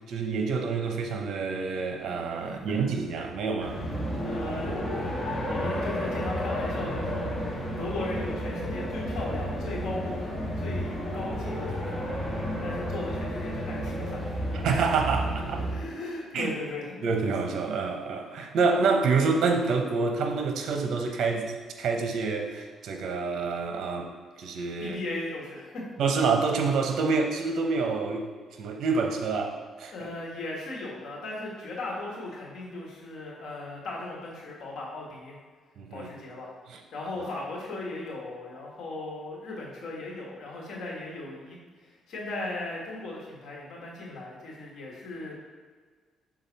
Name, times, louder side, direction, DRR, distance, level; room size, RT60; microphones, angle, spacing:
voice 1, 0.1-3.8 14.5-15.6 16.3-16.5 17.0-24.1 24.4-25.0 26.0-28.2 28.6-29.9 35.8-36.1 36.7-36.8 37.2-37.3, right 4 dB, 70° right, 4 dB, 0.8 m, -27 dB
sound 1, 3.6-15.7, equal, 15° left, 1.5 m, -31 dB
voice 2, 3.9-5.2 5.4-14.4 15.7-17.0 24.8-25.9 29.9-35.4 35.9-36.5 36.9-41.6 41.8-45.4, left 2 dB, 70° left, -3 dB, 1.7 m, -37 dB
6.3 x 3.8 x 4.1 m, 1.5 s
cardioid pair, 90°, 0 cm